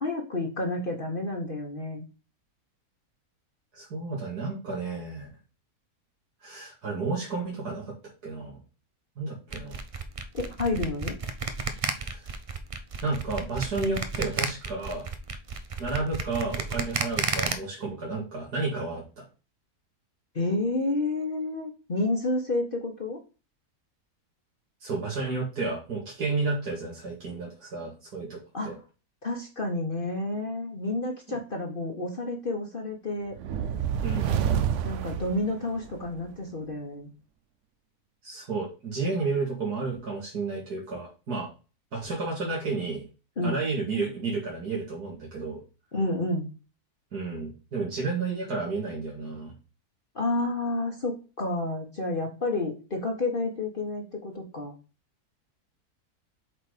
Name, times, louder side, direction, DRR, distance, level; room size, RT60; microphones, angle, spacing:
voice 1, 0.0-2.0 10.3-11.1 20.3-23.2 28.5-28.7 29.2-33.4 34.8-37.1 43.4-43.6 45.9-46.5 50.1-54.7, left 2 dB, 35° left, 1 dB, 1.3 m, -30 dB
voice 2, 3.7-5.3 6.4-7.9 8.2-8.6 9.2-9.8 12.0-12.3 13.0-15.1 15.8-19.3 24.8-28.7 31.3-31.4 34.0-34.4 38.2-41.5 41.9-43.0 43.4-45.6 47.1-49.5, right 3 dB, 85° right, -4 dB, 2.8 m, -32 dB
sound 1, 9.5-17.5, right 4 dB, 40° right, 0.5 m, -31 dB
sound 2, 33.3-36.1, right 8 dB, 60° right, 0.8 m, -28 dB
7.4 x 4.1 x 5.0 m, 0.33 s
omnidirectional pair, 1.6 m